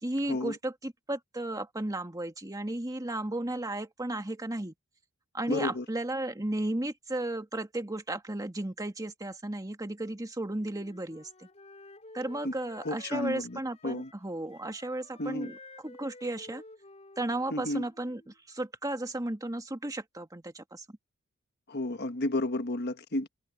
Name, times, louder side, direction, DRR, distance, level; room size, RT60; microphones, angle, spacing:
voice 1, 0.0-4.7 5.3-11.5 12.1-16.6 17.2-21.0, right 1 dB, 15° right, 1.7 m, -34 dB
voice 2, 5.5-5.8 12.4-12.5 12.8-14.1 15.2-15.5 17.5-17.8 21.7-23.3, left 1 dB, 50° left, 1.4 m, -32 dB
Wind instrument woodwind instrument, 10.6-18.3, left 2 dB, 30° left, 6.4 m, -52 dB
head